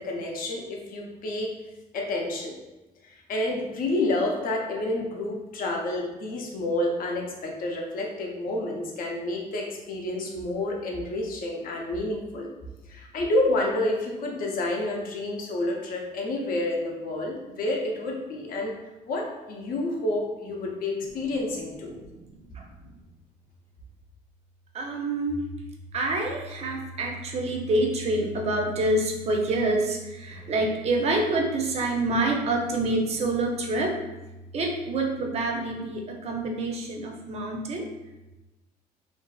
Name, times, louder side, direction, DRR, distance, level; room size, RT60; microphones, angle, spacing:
voice 1, 0.0-1.5 1.9-2.6 3.0-12.5 12.9-18.8 19.1-22.0, left 2 dB, 55° left, 0 dB, 0.6 m, -29 dB
voice 2, 22.5-23.0 24.7-25.5 25.9-34.0 34.5-37.9, right 2 dB, 40° right, 2 dB, 0.5 m, -27 dB
2.5 x 2.3 x 2.3 m, 1.0 s
cardioid pair, 110°, 17 cm